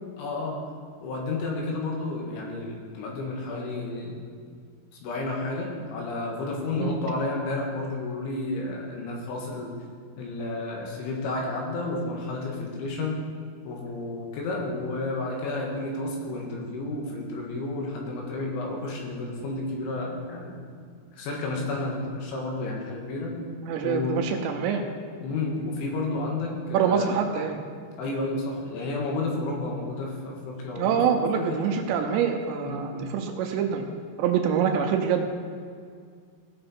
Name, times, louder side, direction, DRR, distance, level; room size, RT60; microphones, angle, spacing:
voice 1, 0.2-0.6 1.0-4.2 5.0-9.7 10.2-13.3 13.7-20.6 21.1-23.4 23.8-24.2 25.2-27.1 28.0-31.6 32.6-33.1, left 2 dB, 80° left, -1 dB, 4.0 m, -31 dB
voice 2, 23.6-24.8 26.7-27.6 30.8-33.8 34.2-35.3, right 7 dB, 80° right, 4 dB, 2.8 m, -25 dB
16.5 x 6.6 x 4.3 m, 2.1 s
omnidirectional pair, 5.4 m